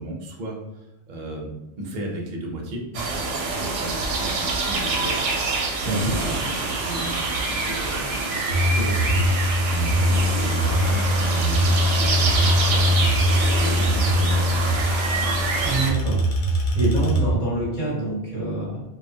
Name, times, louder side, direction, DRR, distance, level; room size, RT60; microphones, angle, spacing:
voice 1, 0.0-1.5 1.8-9.2 9.7-14.7, right 1 dB, 50° right, -1 dB, 0.6 m, -35 dB
sound 1, 2.9-15.9, right 3 dB, 85° right, 0.9 m, -26 dB
sound 2, 8.5-17.4, equal, 90° left, 0.9 m, -22 dB
sound 3, 10.4-17.2, left 2 dB, 60° left, 0.3 m, -41 dB
voice 2, 15.6-16.2 16.5-18.8, right 2 dB, 45° left, -6 dB, 0.9 m, -26 dB
2.8 x 2.3 x 2.6 m, 0.95 s
omnidirectional pair, 1.2 m